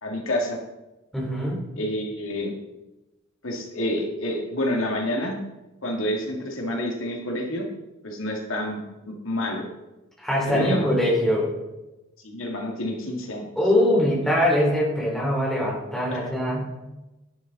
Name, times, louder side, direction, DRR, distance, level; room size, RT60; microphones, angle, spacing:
voice 1, 0.0-0.6 1.8-2.5 3.4-5.4 5.8-7.6 8.0-9.6 10.5-10.9 12.2-13.5 16.1-16.3, left 1 dB, 75° left, 1 dB, 2.1 m, -28 dB
voice 2, 1.1-1.6 10.2-11.5 13.6-16.7, left 1 dB, ahead, -4 dB, 3.5 m, -22 dB
11.0 x 10.5 x 4.1 m, 1.0 s
head